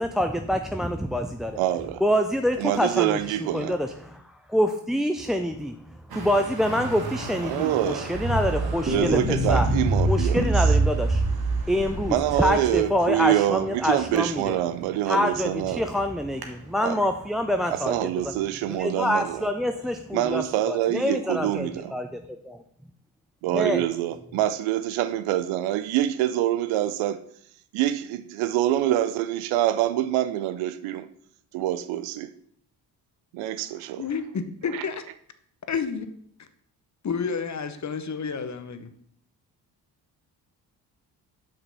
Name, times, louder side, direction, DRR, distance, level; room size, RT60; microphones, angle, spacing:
voice 1, 0.0-1.6 2.0-4.2 4.5-5.8 6.1-9.7 10.0-11.2 11.7-14.6 15.1-18.0 18.7-22.2 22.5-22.6 23.5-23.8, equal, ahead, 0.4 m, -26 dB
voice 2, 1.6-2.0 2.6-3.8 7.4-8.1 8.8-10.6 12.1-15.9 16.8-17.0 17.7-19.4 20.1-22.0 23.4-27.2 27.7-31.1 31.5-32.3 33.3-34.0 34.7-34.8, right 13 dB, 70° right, 0.7 m, -26 dB
Traffic noise roadway noise, 6.1-17.9, right 3 dB, 45° right, 1.6 m, -41 dB
sound 1, 8.1-12.8, right 2 dB, 20° right, 1.4 m, -24 dB
voice 3, 34.0-35.0 35.7-36.1 36.4-36.5 37.0-38.9, left 5 dB, 35° left, 0.9 m, -30 dB
5.9 x 5.1 x 5.5 m
hypercardioid pair, 45°, 50 cm